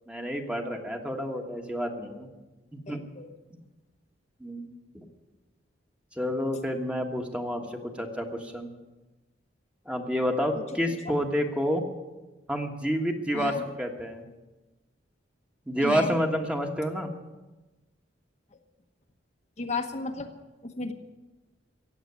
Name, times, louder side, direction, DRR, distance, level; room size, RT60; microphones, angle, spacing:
voice 1, 0.1-2.3 2.7-3.0 4.4-5.0 6.1-8.7 9.9-11.8 12.5-14.2 15.7-17.1, equal, 5° right, 3 dB, 1.4 m, -29 dB
voice 2, 2.9-3.3 10.5-10.6 11.0-11.1 13.3-13.6 15.8-16.2 19.6-20.3 20.6-20.9, left 3 dB, 40° left, 4 dB, 1.1 m, -34 dB
15.5 x 8.8 x 9.7 m, 1.1 s
head